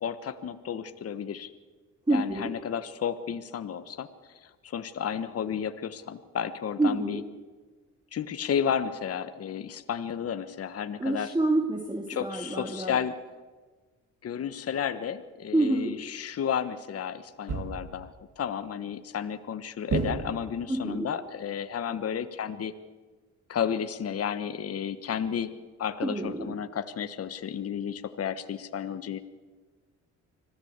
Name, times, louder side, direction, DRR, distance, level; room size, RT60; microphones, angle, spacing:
voice 1, 0.0-1.5 2.1-7.2 8.1-11.3 12.1-13.1 14.2-22.7 23.5-29.2, left 8 dB, 50° left, 10 dB, 1.3 m, -32 dB
voice 2, 2.1-2.5 6.8-7.2 11.0-13.0 15.5-16.0 20.7-21.1 26.0-26.6, right 2 dB, 15° right, 3 dB, 2.6 m, -27 dB
sound 1, 17.5-18.1 19.9-20.7, right 4 dB, 55° right, 2.8 m, -31 dB
25.5 x 16.0 x 8.2 m, 1.3 s
cardioid pair, 90°, 30 cm